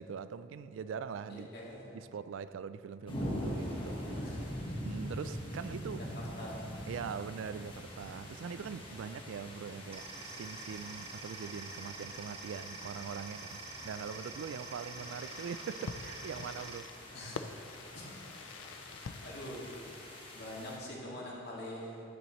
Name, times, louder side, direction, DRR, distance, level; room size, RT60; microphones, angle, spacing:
voice 1, 0.0-1.5 1.9-4.2 4.8-6.1 6.9-13.6 13.8-17.0, right 6 dB, 80° right, 13 dB, 0.3 m, -42 dB
voice 2, 1.3-1.8 4.1-4.4 6.4-6.7 17.1-17.4 17.9-18.1 19.2-19.7 20.3-22.0, left 1 dB, 60° left, -4 dB, 2.1 m, -44 dB
sound 1, 3.1-20.8, equal, 30° left, 1.3 m, -44 dB
sound 2, 9.9-16.8, right 3 dB, 35° right, 0.8 m, -47 dB
Fireworks, 15.0-20.6, left 5 dB, 75° left, 0.4 m, -47 dB
10.0 x 9.6 x 3.1 m, 2.6 s
head